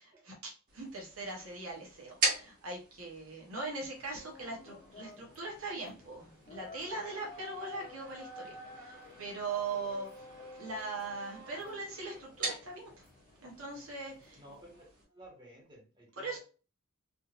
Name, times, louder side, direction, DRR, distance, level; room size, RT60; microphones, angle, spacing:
sound 1, 0.7-15.0, right 2 dB, 40° right, 1.6 m, -43 dB
voice 1, 0.7-10.3 10.5-13.1 13.4-14.4 16.2-16.4, right 3 dB, 65° right, -1 dB, 1.0 m, -40 dB
sound 2, 3.9-14.9, left 2 dB, 35° left, 0.6 m, -52 dB
voice 2, 14.3-16.3, right 1 dB, 20° right, -4 dB, 1.4 m, -54 dB
3.7 x 2.7 x 2.4 m, 0.36 s
head